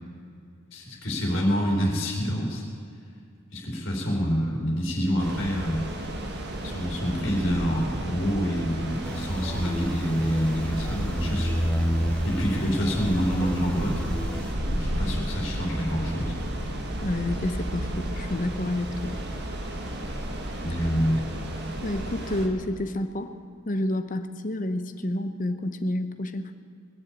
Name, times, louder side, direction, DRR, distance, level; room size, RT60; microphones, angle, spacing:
voice 1, 0.7-2.6 3.5-5.8 6.6-11.6 12.2-14.0 14.7-16.3 20.6-21.2, equal, 60° left, -2 dB, 3.9 m, -27 dB
sound 1, 5.2-22.5, right 1 dB, 50° right, 1.7 m, -33 dB
sound 2, 9.0-14.5, equal, 5° left, 0.6 m, -31 dB
voice 2, 17.0-19.2 21.8-23.3 23.7-26.5, left 1 dB, 35° left, 9 dB, 0.8 m, -29 dB
21.5 x 7.2 x 8.4 m, 2.3 s
head